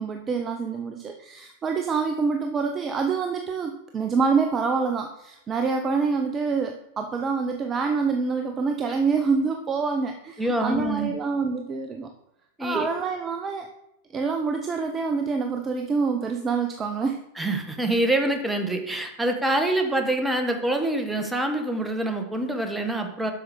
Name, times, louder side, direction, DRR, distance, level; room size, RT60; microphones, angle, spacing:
voice 1, 0.0-12.1 12.6-13.7 14.1-17.2, right 5 dB, 25° right, 5 dB, 0.6 m, -26 dB
voice 2, 10.4-11.1 12.6-12.9 17.4-23.3, right 1 dB, 5° right, 5 dB, 1.1 m, -25 dB
7.9 x 6.2 x 3.7 m, 0.81 s
figure-of-eight pair, 90°, 0 cm